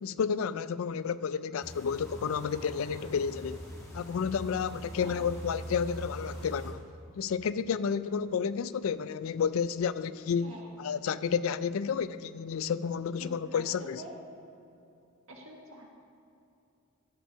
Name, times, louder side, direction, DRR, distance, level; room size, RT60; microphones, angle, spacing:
voice 1, 0.0-3.6 3.9-6.8 7.1-14.0, left 6 dB, 75° left, 0.4 m, -31 dB
sound 1, 1.6-6.7, right 1 dB, 15° left, 1.5 m, -43 dB
voice 2, 13.2-14.1 15.3-16.0, equal, 80° right, 1.6 m, -47 dB
13.5 x 5.5 x 6.0 m
head